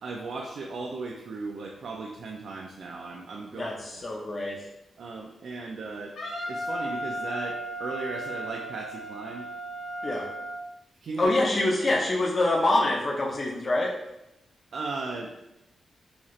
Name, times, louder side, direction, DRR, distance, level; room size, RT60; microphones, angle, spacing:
voice 1, 0.0-4.0 5.0-6.2 6.4-9.5 11.0-11.3 14.7-15.3, right 3 dB, 70° right, 0 dB, 0.4 m, -36 dB
voice 2, 3.5-4.6 10.0-10.3 11.2-13.9, left 2 dB, 35° left, -2 dB, 0.5 m, -25 dB
Wind instrument woodwind instrument, 6.2-10.6, right 1 dB, 90° left, 0.9 m, -35 dB
4.1 x 2.4 x 3.0 m, 0.89 s
wide cardioid pair, 135°, 0 cm